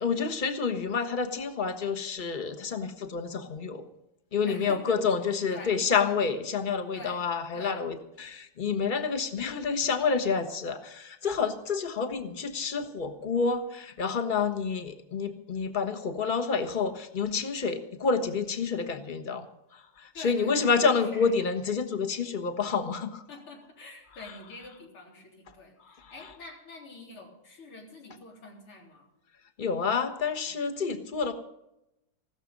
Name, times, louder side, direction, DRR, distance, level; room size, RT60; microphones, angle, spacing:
voice 1, 0.0-3.9 4.3-23.2 24.2-24.4 25.8-26.3 29.6-31.3, left 5 dB, 30° left, 7 dB, 1.0 m, -29 dB
voice 2, 4.5-4.9 5.5-5.7 6.9-7.2 7.5-7.8 20.1-20.7 21.1-21.3 23.3-29.1, left 3 dB, 80° left, -1 dB, 4.5 m, -46 dB
15.5 x 13.5 x 5.3 m, 0.86 s
omnidirectional pair, 2.4 m